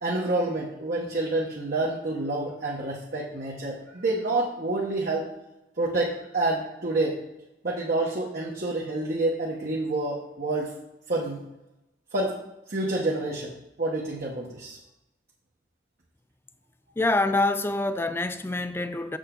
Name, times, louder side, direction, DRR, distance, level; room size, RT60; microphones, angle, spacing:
voice 1, 0.0-5.3 5.8-7.2 7.6-10.7 11.1-11.4 12.1-12.3 12.7-13.5 13.8-14.8, right 2 dB, 50° right, 1.1 m, -28 dB
voice 2, 17.0-19.2, left 2 dB, 15° left, 0.3 m, -26 dB
6.9 x 6.5 x 3.8 m
head